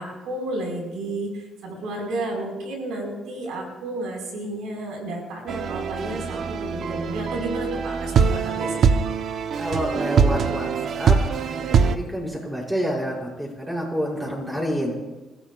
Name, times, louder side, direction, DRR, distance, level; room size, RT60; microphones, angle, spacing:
voice 1, 0.0-9.0, right 2 dB, 85° right, 0 dB, 5.1 m, -32 dB
sound 1, 5.5-12.0, right 6 dB, 65° right, 0.9 m, -23 dB
voice 2, 9.5-11.2 11.6-14.9, equal, 10° right, -3 dB, 6.3 m, -28 dB
28.5 x 15.0 x 2.5 m, 1.1 s
cardioid pair, 90°, 0 cm